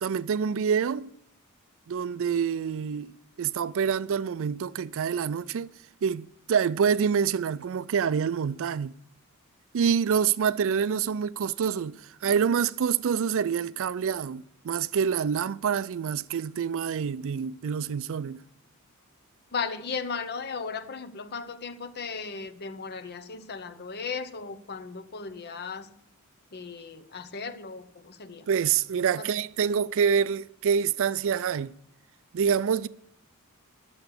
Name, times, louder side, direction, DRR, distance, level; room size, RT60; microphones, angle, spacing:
voice 1, 0.0-1.1 1.9-5.7 6.0-8.9 9.7-18.4 28.5-31.7 32.3-32.9, right 7 dB, 65° right, 0.4 m, -26 dB
voice 2, 19.5-25.9 26.5-28.5 29.2-29.3, left 5 dB, 50° left, 0.8 m, -36 dB
11.5 x 7.0 x 6.6 m
head